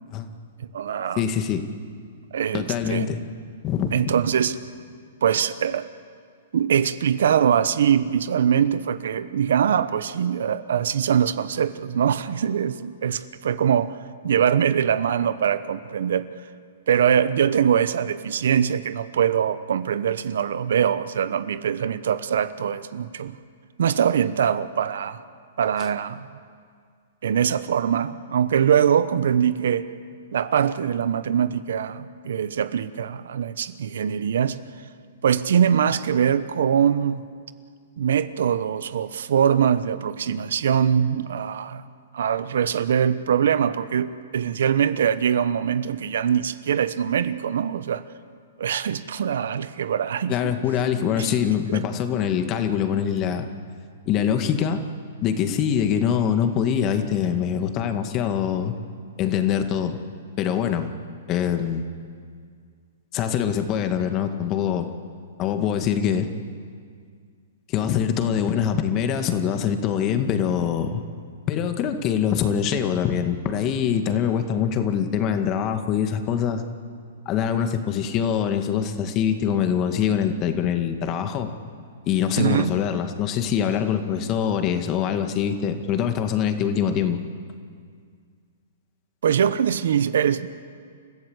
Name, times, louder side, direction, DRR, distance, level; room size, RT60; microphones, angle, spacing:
voice 1, 0.6-1.2 2.3-3.1 3.9-4.6 5.2-5.9 6.5-14.0 14.2-16.3 16.9-23.4 23.8-25.2 25.6-26.3 27.2-29.9 30.3-34.6 35.2-37.2 38.0-41.8 42.1-48.0 48.6-50.5 51.2-51.3 51.7-51.8 82.4-82.7 89.2-90.5, right 8 dB, 70° right, 14 dB, 1.1 m, -22 dB
voice 2, 1.2-1.6 2.5-3.2 3.6-4.1 50.3-53.5 54.1-54.8 55.2-58.7 59.2-60.0 60.4-60.9 61.3-61.8 63.1-64.9 65.4-66.3 67.7-71.0 71.5-76.6 77.3-81.5 82.1-87.2, left 8 dB, 30° left, 7 dB, 2.0 m, -24 dB
29.5 x 15.0 x 8.2 m, 2.1 s
hypercardioid pair, 140°, 0 cm